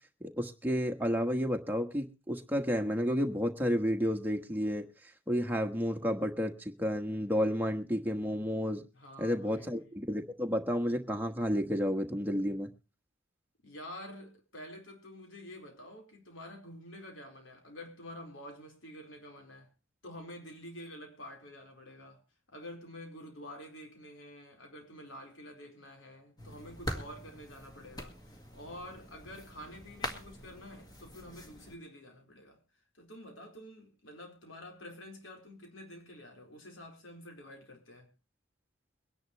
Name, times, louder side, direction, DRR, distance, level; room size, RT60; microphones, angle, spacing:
voice 1, 0.2-4.9 5.3-8.8 9.2-12.7, equal, 10° right, 1.3 m, -31 dB
voice 2, 8.9-9.8 13.6-19.7 20.0-22.2 22.5-32.6 32.9-38.1, left 1 dB, 85° left, 4.4 m, -48 dB
sound 1, 26.4-31.8, equal, 20° left, 1.9 m, -44 dB
23.5 x 10.5 x 3.2 m
head